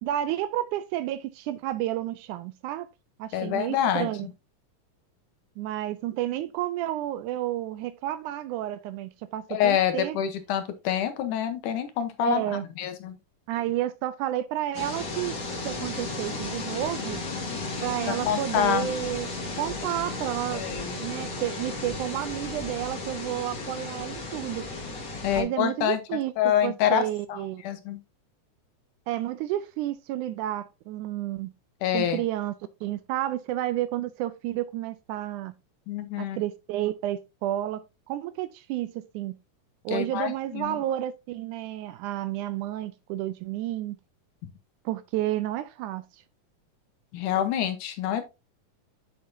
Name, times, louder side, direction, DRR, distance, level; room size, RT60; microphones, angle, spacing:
voice 1, 0.0-2.9 3.2-4.3 5.6-10.2 12.2-12.7 13.5-15.4 15.6-17.2 17.8-19.3 19.6-20.6 21.0-24.7 25.3-27.6 29.1-31.5 31.9-32.5 32.8-35.5 36.2-39.4 39.9-44.0 44.9-46.1, right 13 dB, 80° right, 1.9 m, -31 dB
voice 2, 3.3-4.3 9.5-13.2 18.1-18.9 20.5-21.0 25.2-26.0 26.4-27.0 27.3-28.0 31.8-32.2 35.9-36.4 39.9-40.8 47.1-48.2, left 10 dB, 75° left, 2.4 m, -27 dB
sound 1, 14.7-25.4, left 3 dB, 35° left, 2.3 m, -34 dB
8.6 x 6.7 x 2.7 m
omnidirectional pair, 3.7 m